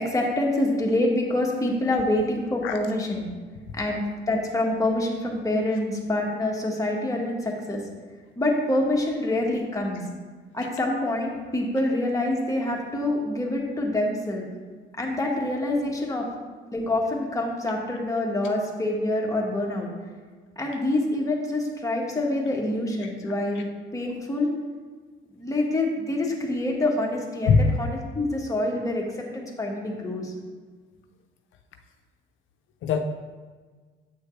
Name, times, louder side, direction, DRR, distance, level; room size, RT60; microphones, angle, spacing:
voice 1, 0.0-3.3 3.7-7.8 8.4-10.0 10.5-14.4 15.0-16.3 16.7-19.9 20.6-24.5 25.4-27.5 27.8-30.3, left 1 dB, 15° left, -1 dB, 1.5 m, -26 dB
voice 2, 23.0-23.6 27.5-27.7 32.8-33.0, left 5 dB, 80° left, 5 dB, 0.5 m, -23 dB
8.0 x 6.2 x 3.2 m, 1.5 s
cardioid pair, 90°, 20 cm